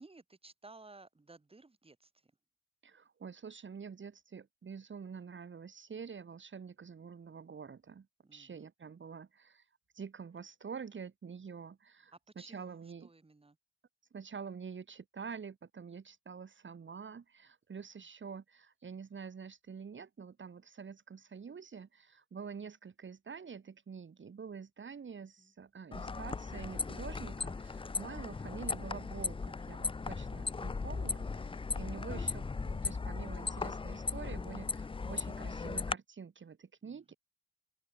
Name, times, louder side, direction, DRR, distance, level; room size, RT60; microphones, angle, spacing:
voice 1, 0.0-2.0 8.3-8.6 12.4-12.7 13.1-13.5, right 3 dB, 20° right, 4.9 m, -55 dB
voice 2, 2.8-8.1 8.3-9.7 9.9-13.1 14.1-37.1, right 6 dB, 40° right, 3.7 m, -47 dB
sound 1, 25.9-35.9, left 4 dB, 15° left, 0.7 m, -37 dB
cardioid pair, 90°, 30 cm